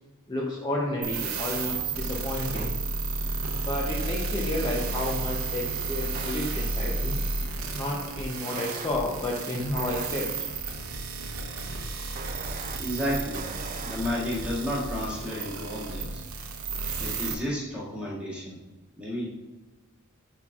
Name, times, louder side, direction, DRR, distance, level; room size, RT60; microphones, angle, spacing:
voice 1, 0.3-2.7 3.6-7.2 7.7-10.3, left 1 dB, 20° left, -3 dB, 0.7 m, -31 dB
sound 1, 1.0-17.3, right 3 dB, 80° right, 0.8 m, -32 dB
sound 2, 1.4-1.5 2.6-2.7 5.0-5.1 6.2-6.3 8.6-8.9 9.8-10.1 12.2-12.8 13.4-14.0, right 5 dB, 35° right, 0.4 m, -40 dB
voice 2, 12.8-13.5 13.8-16.2 17.0-18.6 19.0-19.3, left 1 dB, 5° right, -7 dB, 1.9 m, -32 dB
10.5 x 4.2 x 2.4 m, 1.2 s
head